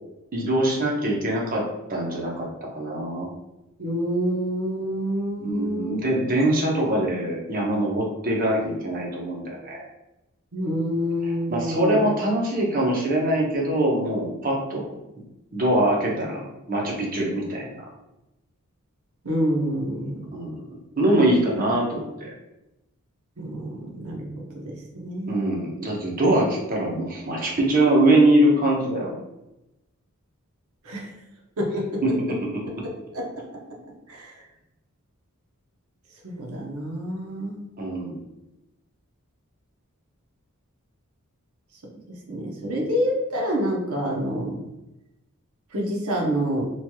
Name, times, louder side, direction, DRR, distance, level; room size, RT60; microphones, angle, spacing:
voice 1, 0.3-3.3 5.4-9.9 11.3-14.8 15.5-16.4 16.7-17.8 20.3-22.3 25.3-29.1 32.0-32.2 37.8-38.2, right 1 dB, 40° right, -2 dB, 0.7 m, -23 dB
voice 2, 3.8-6.0 10.5-12.0 19.2-20.2 23.4-25.7 30.8-31.1 31.6-32.0 32.3-32.4 32.8-33.4 34.1-34.4 36.2-37.6 42.3-44.6 45.7-46.7, equal, 75° right, -1 dB, 0.8 m, -27 dB
3.1 x 2.9 x 2.3 m, 0.93 s
head